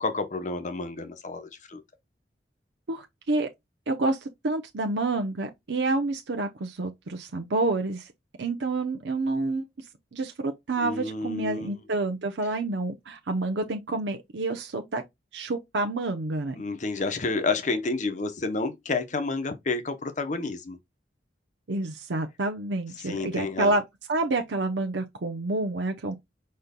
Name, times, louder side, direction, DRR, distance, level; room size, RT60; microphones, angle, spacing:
voice 1, 0.0-1.8 10.8-11.8 16.6-20.8 23.0-23.7, left 3 dB, 40° left, 0.8 m, -30 dB
voice 2, 2.9-3.5 3.9-8.1 8.4-9.7 10.1-15.0 15.3-16.6 21.7-23.8 24.1-26.1, right 2 dB, 75° right, 0.7 m, -28 dB
5.1 x 4.3 x 2.2 m
head